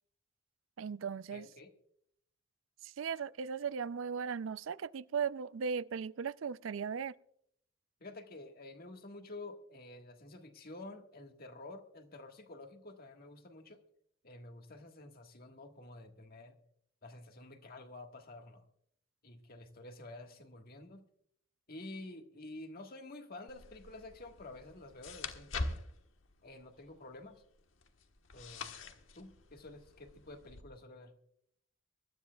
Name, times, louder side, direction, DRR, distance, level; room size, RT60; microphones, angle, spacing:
voice 1, 0.8-1.5 2.8-7.1, right 6 dB, 80° right, 0.4 m, -37 dB
voice 2, 1.3-1.7 8.0-13.8 14.2-16.6 17.0-18.6 19.2-21.0 21.7-25.8 26.4-27.4 28.3-31.1, left 2 dB, 50° left, 1.6 m, -50 dB
sound 1, 23.5-30.6, left 3 dB, 85° left, 1.3 m, -45 dB
24.0 x 12.5 x 2.3 m
head